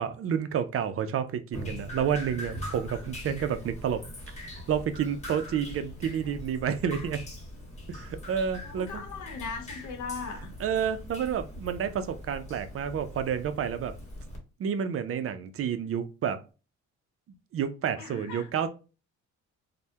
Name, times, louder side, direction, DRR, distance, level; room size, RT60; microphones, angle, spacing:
voice 1, 0.0-4.0 4.4-7.2 7.9-9.0 10.6-13.9 14.6-16.4 17.5-18.7, right 8 dB, 50° right, 0.4 m, -30 dB
Drip, 1.5-14.4, left 1 dB, 25° left, 1.3 m, -42 dB
voice 2, 8.6-10.5 18.0-18.5, left 5 dB, 75° left, 0.8 m, -38 dB
3.3 x 2.1 x 2.7 m
cardioid pair, 90°, 30 cm